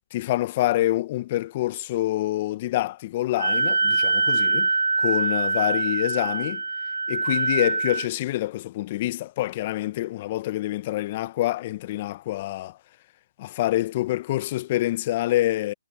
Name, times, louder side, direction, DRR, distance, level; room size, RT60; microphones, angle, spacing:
voice 1, 0.1-4.7 5.0-6.6 7.1-12.8 13.4-15.7, left 15 dB, 35° left, 1.0 m, -26 dB
Wind instrument woodwind instrument, 3.4-8.1, right 3 dB, 85° right, 0.4 m, -24 dB
figure-of-eight pair, 145°, 0 cm